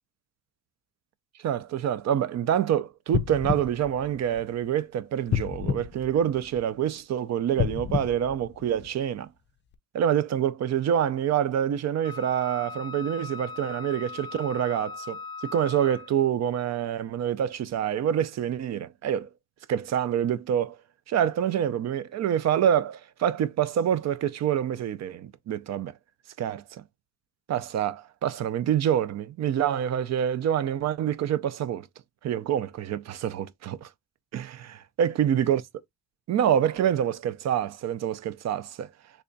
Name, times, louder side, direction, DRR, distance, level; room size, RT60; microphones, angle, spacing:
voice 1, 1.4-9.3 9.9-19.3 19.7-20.8 21.1-25.9 26.4-26.8 27.5-31.9 32.2-33.9 34.3-35.6 36.3-38.9, right 9 dB, 55° right, 0.5 m, -26 dB
sound 1, 3.1-4.8 5.3-6.8 7.5-9.2 9.7-9.8, left 9 dB, 35° left, 0.4 m, -31 dB
Wind instrument woodwind instrument, 12.0-16.2, left 4 dB, 35° right, 1.0 m, -40 dB
3.4 x 2.3 x 3.8 m
cardioid pair, 120°, 32 cm